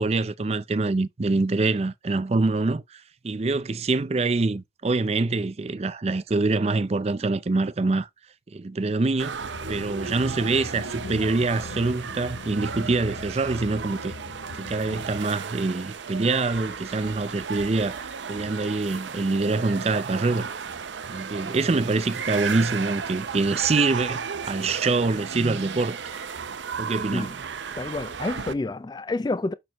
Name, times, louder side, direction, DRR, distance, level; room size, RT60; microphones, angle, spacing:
voice 1, 0.0-8.1 8.5-14.1 14.6-20.5 21.1-26.2 26.8-27.3, right 3 dB, 35° right, 0.5 m, -25 dB
sound 1, 9.2-28.5, right 6 dB, 85° right, 0.6 m, -34 dB
sound 2, 9.4-15.2, left 3 dB, 80° left, 0.6 m, -40 dB
voice 2, 27.8-29.5, left 2 dB, 25° left, 0.3 m, -29 dB
6.5 x 6.0 x 3.0 m
head